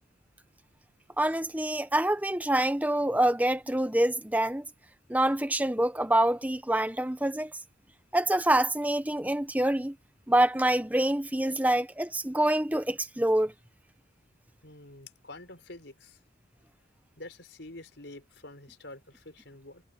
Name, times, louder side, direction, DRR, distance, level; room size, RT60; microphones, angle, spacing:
voice 1, 1.2-4.6 5.1-7.5 8.1-9.9 10.3-13.5, right 1 dB, 10° right, 0.9 m, -26 dB
voice 2, 14.6-16.2 17.2-19.8, left 2 dB, 65° left, 5.2 m, -47 dB
head